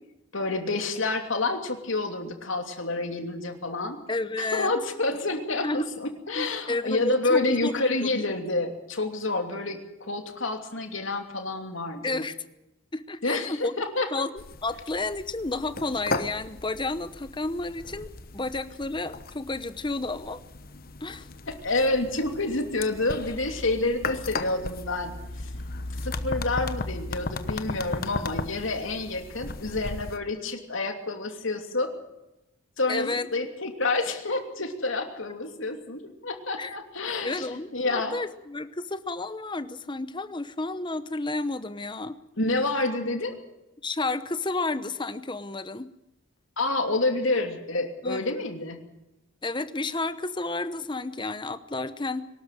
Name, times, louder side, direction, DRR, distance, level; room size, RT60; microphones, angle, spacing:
voice 1, 0.3-4.0 4.4-12.2 13.2-14.1 21.4-25.5 26.0-31.9 32.8-38.2 42.4-43.4 46.6-48.8, left 2 dB, 65° left, 5 dB, 2.9 m, -28 dB
voice 2, 4.1-4.7 5.6-5.9 6.3-8.1 12.0-12.3 12.9-13.7 14.1-14.3 14.6-20.4 21.0-21.3 32.9-33.3 36.6-36.8 37.2-42.2 43.8-45.9 48.0-48.2 49.4-52.3, left 2 dB, 20° left, 13 dB, 0.9 m, -31 dB
sound 1, 14.4-30.2, left 2 dB, 45° left, 1.1 m, -36 dB
23.0 x 13.0 x 9.1 m, 0.92 s
head